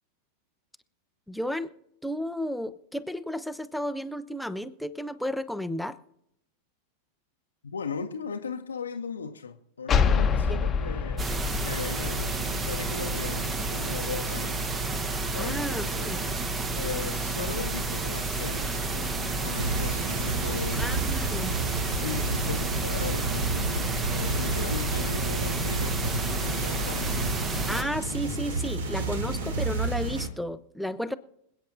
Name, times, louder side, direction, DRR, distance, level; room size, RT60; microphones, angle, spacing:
voice 1, 1.3-1.7 2.0-6.0 15.3-16.2 20.7-21.5 27.7-31.1, equal, ahead, 0.6 m, -33 dB
voice 2, 7.6-15.0 15.3-16.4 16.7-20.9 21.9-23.8 24.1-27.5, left 5 dB, 70° left, 0.7 m, -38 dB
sound 1, 9.9-13.4, left 6 dB, 20° left, 0.9 m, -27 dB
sound 2, 11.2-27.8, right 2 dB, 20° right, 1.0 m, -30 dB
sound 3, 19.5-30.3, right 2 dB, 55° right, 1.6 m, -31 dB
26.5 x 8.9 x 2.7 m
figure-of-eight pair, 90°, 0 cm